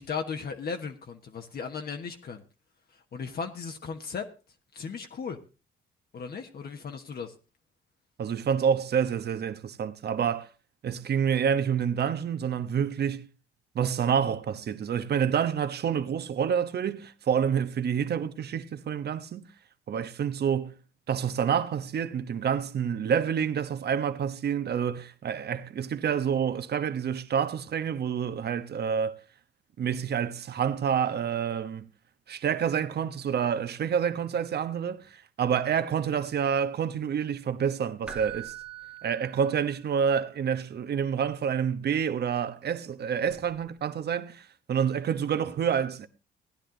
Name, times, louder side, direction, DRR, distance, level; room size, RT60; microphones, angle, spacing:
voice 1, 0.0-2.4 3.1-4.3 4.7-5.4 6.1-7.3, left 5 dB, 50° left, 1.3 m, -36 dB
voice 2, 8.2-10.5 10.8-13.3 13.7-19.5 19.9-20.7 21.1-29.1 29.8-31.9 32.3-38.5 39.0-46.1, right 7 dB, 55° right, 1.1 m, -28 dB
Keyboard (musical), 38.1-40.0 43.3-43.4, right 9 dB, 5° right, 1.7 m, -43 dB
16.5 x 10.0 x 3.9 m
cardioid pair, 90°, 20 cm